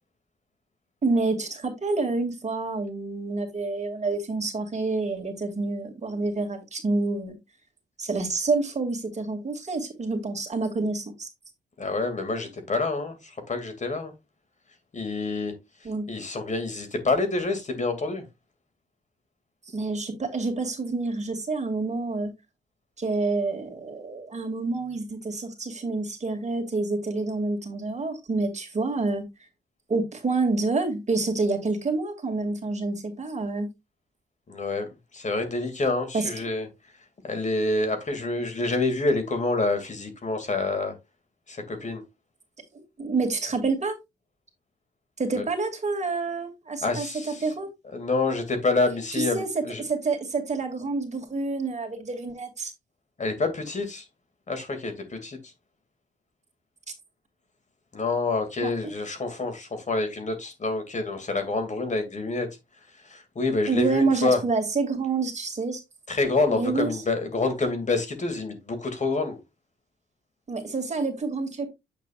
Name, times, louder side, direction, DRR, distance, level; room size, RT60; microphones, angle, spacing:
voice 1, 1.0-7.4 8.0-11.3 15.8-16.1 19.7-22.3 23.0-29.2 29.9-33.7 36.1-36.3 42.7-44.0 45.2-47.7 49.1-52.7 58.6-58.9 63.7-65.8 66.5-67.0 70.5-71.7, right 3 dB, 40° right, 2.4 m, -28 dB
voice 2, 11.8-14.1 14.9-15.5 16.1-18.2 34.5-34.9 35.1-36.7 37.2-40.9 41.5-42.0 45.4-45.5 46.8-47.4 47.9-49.8 53.2-54.0 54.5-55.4 57.9-62.5 63.1-64.4 66.1-69.4, left 3 dB, 40° left, 2.3 m, -27 dB
8.1 x 7.2 x 2.4 m
cardioid pair, 90°, 19 cm